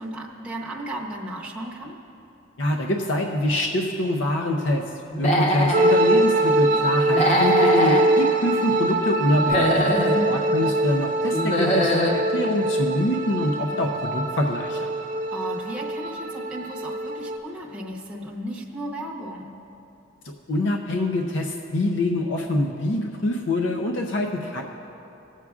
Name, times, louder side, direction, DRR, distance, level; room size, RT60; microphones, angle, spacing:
voice 1, 0.0-2.0 9.9-10.3 15.3-19.5, equal, 5° right, -4 dB, 0.8 m, -34 dB
voice 2, 2.6-4.8 5.2-9.8 10.3-14.9 20.5-24.6, left 1 dB, 60° left, 2 dB, 0.6 m, -25 dB
Human voice / Animal, 5.1-5.9 7.1-8.1 9.3-10.2 11.3-12.2, equal, 35° left, 0.9 m, -22 dB
sound 1, 5.7-17.4, right 1 dB, 40° right, 0.5 m, -23 dB
20.5 x 7.4 x 2.4 m, 2.9 s
head